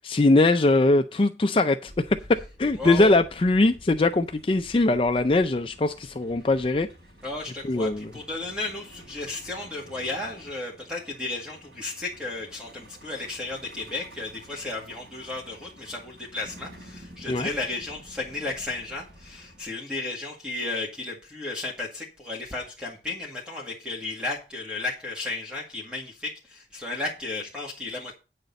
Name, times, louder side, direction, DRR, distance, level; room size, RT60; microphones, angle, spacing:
voice 1, 0.0-2.2 2.6-6.9 7.6-8.1 17.3-17.5, left 2 dB, 30° left, 0.4 m, -21 dB
Truck, 1.9-19.6, equal, 70° right, 4.4 m, -49 dB
voice 2, 2.8-3.1 7.2-28.1, left 2 dB, 5° right, 1.8 m, -34 dB
9.0 x 6.6 x 5.2 m
head